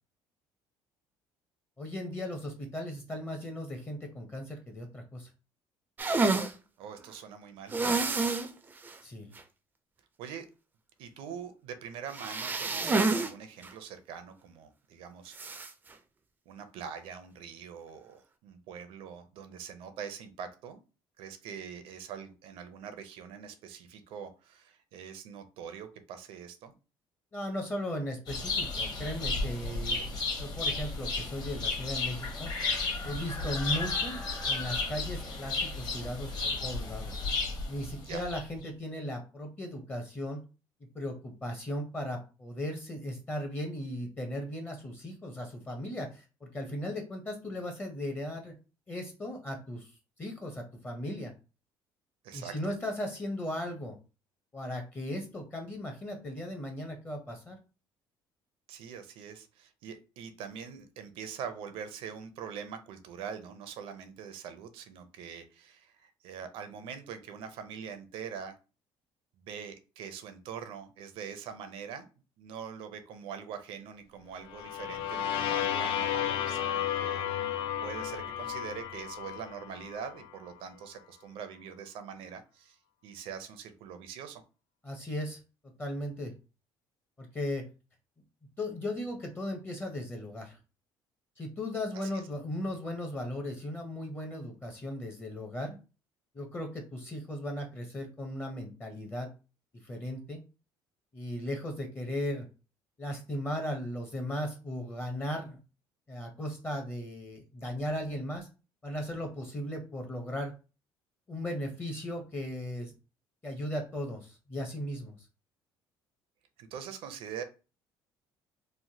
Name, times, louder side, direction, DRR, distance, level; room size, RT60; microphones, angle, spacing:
voice 1, 1.8-5.3 9.0-9.3 27.3-32.5 33.0-37.2 37.7-40.4 40.8-48.5 48.9-49.9 50.2-51.3 52.3-54.0 54.5-57.6 84.8-85.4 85.8-86.3 87.2-87.7 88.6-90.6 91.4-95.8 96.3-99.3 99.8-100.4 101.1-102.5 103.0-105.6 106.1-108.5 108.8-110.5 111.3-112.9 113.4-115.2, left 1 dB, 20° left, 3 dB, 0.6 m, -37 dB
sound 1, 6.0-6.5 7.7-8.5 8.9-9.0 9.4-9.5 12.1-13.3 13.6-13.7 15.3-15.7, right 3 dB, 20° right, 0.3 m, -28 dB
voice 2, 6.8-7.8 10.2-10.5 11.0-15.3 16.5-20.8 21.2-26.7 29.9-30.1 38.0-38.2 52.2-52.5 58.7-68.6 69.4-72.1 72.4-77.2 77.8-84.4 91.9-92.2 116.6-117.4, right 7 dB, 75° right, 9 dB, 0.5 m, -43 dB
sound 2, 28.3-38.7, left 3 dB, 45° left, 1.0 m, -33 dB
sound 3, 74.5-80.3, left 10 dB, 80° left, 0.4 m, -33 dB
3.1 x 2.1 x 2.7 m, 0.32 s
cardioid pair, 115°, 9 cm